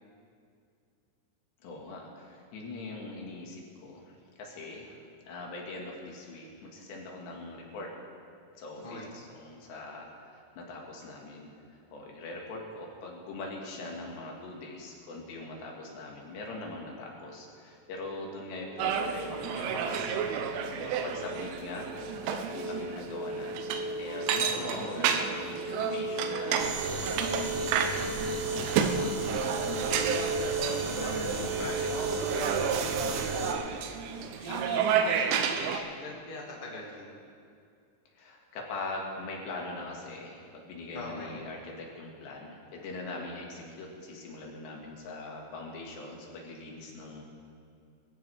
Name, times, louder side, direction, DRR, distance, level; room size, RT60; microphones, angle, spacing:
voice 1, 1.6-5.0 5.3-7.9 8.6-20.0 20.6-29.3 38.1-47.2, left 2 dB, 70° left, -1 dB, 3.9 m, -42 dB
voice 2, 8.7-9.2 19.5-19.9 20.1-20.5 24.5-25.2 30.6-33.1 34.1-37.2 40.9-41.5, left 1 dB, 20° left, -4 dB, 1.4 m, -42 dB
sound 1, 18.6-33.3, right 1 dB, 45° right, 2.0 m, -39 dB
sound 2, 18.8-35.8, right 7 dB, 90° right, 3.3 m, -31 dB
sound 3, 26.6-33.5, right 3 dB, 70° right, 2.1 m, -35 dB
23.0 x 14.5 x 3.5 m, 2.3 s
omnidirectional pair, 5.4 m